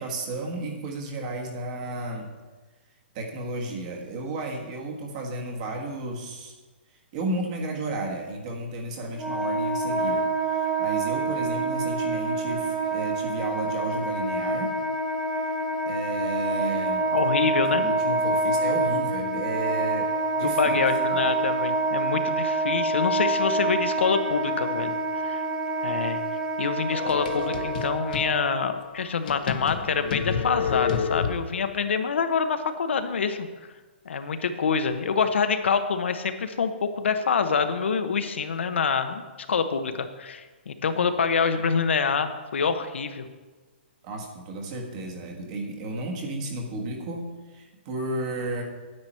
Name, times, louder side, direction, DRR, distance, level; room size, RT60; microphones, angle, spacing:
voice 1, 0.0-2.3 3.1-6.5 7.1-14.7 15.8-17.0 17.4-20.8 21.1-21.3 44.0-48.6, right 2 dB, 35° right, 2 dB, 1.5 m, -33 dB
Wind instrument woodwind instrument, 9.1-28.6, right 2 dB, 5° right, 0.9 m, -27 dB
voice 2, 17.1-17.8 20.4-25.0 25.2-25.4 25.8-26.2 26.6-33.5 34.0-39.2 39.5-43.3, left 5 dB, 85° left, 8 dB, 0.9 m, -26 dB
sound 1, 26.9-28.3 28.8-28.9 29.3-31.7, left 7 dB, 45° left, 0.7 m, -29 dB
9.5 x 8.9 x 4.4 m, 1.3 s
hypercardioid pair, 165°, 6 cm